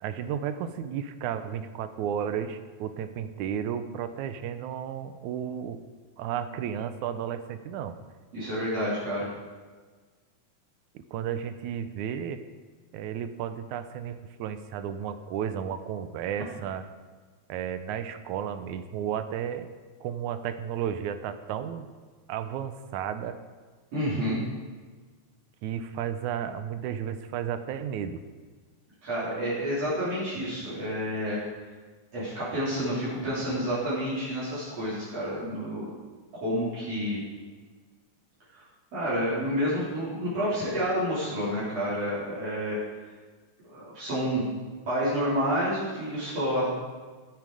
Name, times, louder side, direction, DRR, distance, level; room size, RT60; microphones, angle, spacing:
voice 1, 0.0-5.8 6.2-8.0 11.0-12.4 12.9-16.8 17.5-19.7 20.0-21.9 22.3-23.4 25.6-28.2, right 9 dB, 80° right, 10 dB, 2.1 m, -33 dB
voice 2, 8.3-9.3 23.9-24.4 29.0-31.4 32.1-35.9 36.4-37.2 38.5-38.6 38.9-42.8 43.7-44.5 44.9-46.7, equal, 55° right, -11 dB, 4.9 m, -29 dB
13.5 x 9.5 x 4.8 m, 1.4 s
omnidirectional pair, 3.5 m